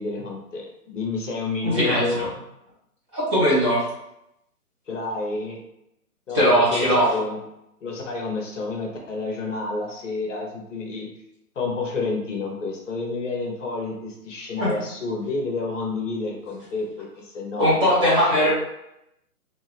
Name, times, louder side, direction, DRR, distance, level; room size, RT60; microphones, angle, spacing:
voice 1, 0.0-2.3 4.9-5.6 6.3-7.4 7.8-11.1 11.6-17.7 18.3-18.4, left 3 dB, 50° left, -1 dB, 0.9 m, -29 dB
voice 2, 1.6-2.3 3.1-3.8 6.3-7.1 14.6-14.7 17.6-18.5, equal, 20° right, -8 dB, 1.0 m, -19 dB
3.0 x 2.8 x 2.9 m, 0.83 s
hypercardioid pair, 155°, 46 cm